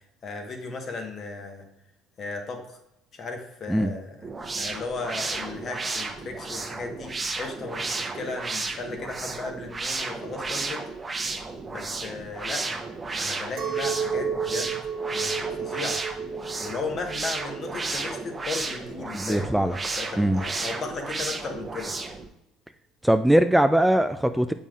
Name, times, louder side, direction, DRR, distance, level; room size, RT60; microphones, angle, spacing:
voice 1, 0.2-1.7 2.2-2.8 3.1-4.3 4.6-10.8 11.7-12.8 13.1-14.8 15.1-16.0 16.6-22.0, left 4 dB, 45° left, 3 dB, 1.2 m, -36 dB
sound 1, 4.2-22.3, right 3 dB, 25° right, 0.8 m, -33 dB
Chink clink, 13.6-19.0, right 6 dB, 65° right, 0.8 m, -32 dB
voice 2, 19.1-19.8 20.2-20.4 23.0-24.5, right 1 dB, 5° right, 9 dB, 0.3 m, -21 dB
7.3 x 5.4 x 2.4 m, 0.86 s
hypercardioid pair, 70°, 0 cm